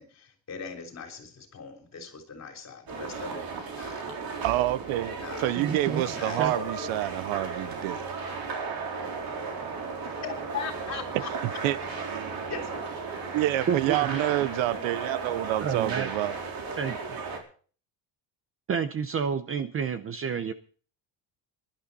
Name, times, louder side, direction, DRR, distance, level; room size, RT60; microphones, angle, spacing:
voice 1, 0.0-4.3 5.2-5.5 6.0-6.7 10.2-11.3 12.4-12.9, left 6 dB, 35° left, 3.6 m, -40 dB
sound 1, 2.9-17.4, right 4 dB, 45° right, 4.1 m, -35 dB
voice 2, 4.4-8.0 11.1-12.4 13.3-16.4, right 15 dB, 75° right, 0.8 m, -28 dB
voice 3, 5.5-6.0 6.4-6.5 13.7-14.2 15.6-16.1 16.8-17.2 18.7-20.5, right 7 dB, 30° right, 0.7 m, -29 dB
20.0 x 11.5 x 4.2 m
cardioid pair, 160°, 48 cm